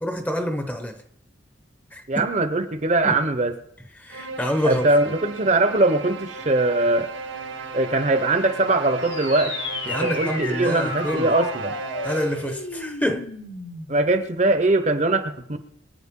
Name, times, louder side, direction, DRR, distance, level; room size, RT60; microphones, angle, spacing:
voice 1, 0.0-1.0 1.9-2.3 3.0-3.2 4.0-4.8 9.9-11.3 12.0-13.3, equal, 10° left, 7 dB, 0.9 m, -27 dB
voice 2, 2.1-3.5 4.6-7.1 7.7-9.5 9.9-11.8 13.9-15.6, right 2 dB, 40° right, 9 dB, 0.8 m, -21 dB
sound 1, 4.1-12.6, right 4 dB, 85° right, 1.5 m, -35 dB
sound 2, 9.0-14.0, left 3 dB, 80° left, 2.3 m, -34 dB
24.0 x 9.1 x 3.7 m, 0.75 s
head